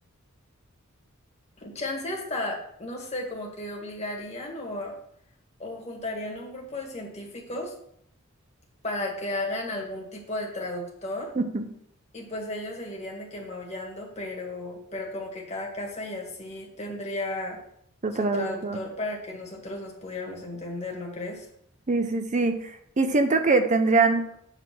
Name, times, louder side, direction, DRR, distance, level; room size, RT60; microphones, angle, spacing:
voice 1, 1.6-5.0 5.6-7.7 8.8-11.3 12.1-17.6 18.2-21.5, left 1 dB, 30° left, -1 dB, 1.7 m, -34 dB
voice 2, 18.0-18.8 21.9-22.7 23.0-24.4, right 3 dB, 35° right, 7 dB, 0.6 m, -23 dB
7.2 x 3.8 x 5.9 m, 0.69 s
head